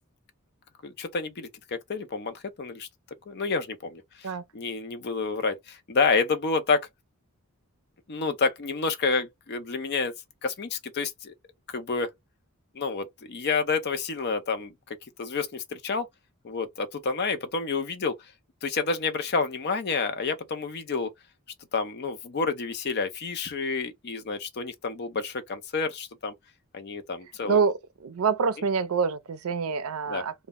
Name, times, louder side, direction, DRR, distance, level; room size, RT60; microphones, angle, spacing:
voice 1, 0.8-2.9 3.3-6.9 8.1-10.2 10.4-11.3 11.7-12.1 12.7-16.1 16.4-18.2 18.6-21.1 21.7-26.3 26.7-27.6 30.1-30.2, left 4 dB, 50° left, 0.5 m, -29 dB
voice 2, 28.0-30.3, right 5 dB, 65° right, 0.5 m, -26 dB
2.2 x 2.0 x 3.5 m
head